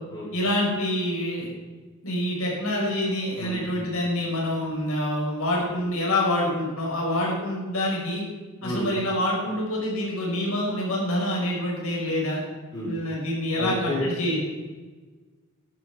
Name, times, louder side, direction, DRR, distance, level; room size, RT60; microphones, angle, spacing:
voice 1, 0.3-1.5 2.0-8.2 8.6-12.4 12.8-14.4, left 1 dB, 75° left, -2 dB, 5.1 m, -26 dB
voice 2, 3.4-3.8 8.6-8.9 12.7-12.9 13.5-14.1, equal, 20° left, -6 dB, 4.1 m, -30 dB
13.5 x 12.0 x 4.7 m, 1.3 s
head